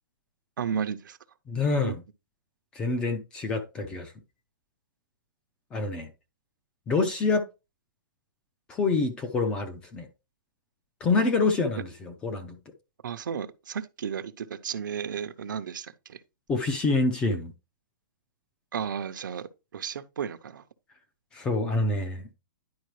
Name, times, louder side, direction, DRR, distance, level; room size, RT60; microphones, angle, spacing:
voice 1, 0.6-1.2 1.8-1.9 13.0-16.2 18.7-20.6, right 7 dB, 70° right, 0.8 m, -33 dB
voice 2, 1.5-2.0 2.7-4.1 5.7-6.1 6.9-7.5 8.7-10.1 11.0-12.6 16.5-17.5 21.3-22.2, left 3 dB, 10° left, 0.4 m, -26 dB
10.5 x 4.6 x 3.1 m
hypercardioid pair, 175°, 11 cm